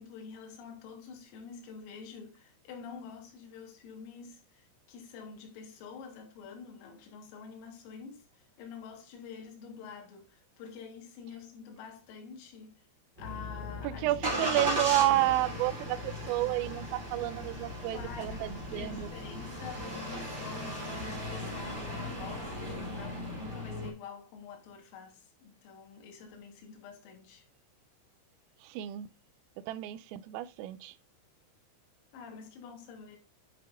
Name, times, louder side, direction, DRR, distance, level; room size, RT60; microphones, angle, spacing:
voice 1, 0.0-12.8 13.2-14.0 14.4-14.6 17.9-27.5 32.1-33.2, left 6 dB, 90° left, 4.2 m, -47 dB
Engine starting, 13.2-23.9, equal, 15° right, 2.7 m, -37 dB
voice 2, 13.8-19.1 28.6-29.1 29.7-31.0, right 15 dB, 85° right, 3.1 m, -30 dB
10.5 x 5.6 x 2.5 m
omnidirectional pair, 5.8 m